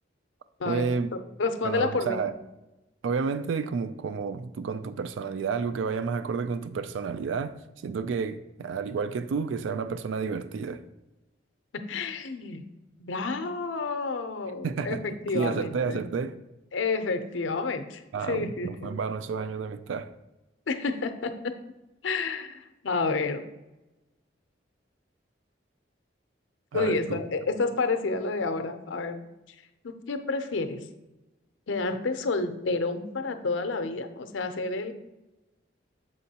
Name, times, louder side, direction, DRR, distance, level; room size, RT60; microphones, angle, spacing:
voice 1, 0.6-1.1 1.6-2.3 3.0-10.8 14.6-15.0 15.3-16.4 18.1-20.1 26.7-27.2, right 5 dB, 85° right, 12 dB, 0.3 m, -30 dB
voice 2, 1.4-2.2 11.7-12.6 13.0-16.0 16.7-19.0 20.7-21.5 22.0-23.5 26.7-29.2 29.5-29.6 29.8-30.9 31.7-34.9, left 3 dB, 85° left, 8 dB, 0.6 m, -30 dB
6.7 x 5.3 x 2.8 m, 1.0 s
head